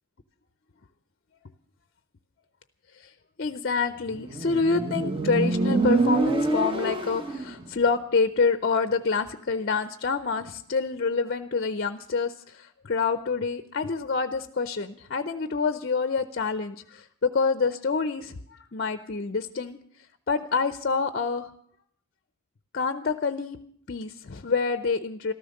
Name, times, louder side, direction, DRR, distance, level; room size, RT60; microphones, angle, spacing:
voice 1, 3.4-21.5 22.7-23.6 23.9-25.3, left 4 dB, 45° left, 11 dB, 0.6 m, -27 dB
Motorcycle, 4.1-7.6, right 2 dB, 25° right, 1.0 m, -25 dB
14.0 x 13.0 x 6.5 m, 0.64 s
head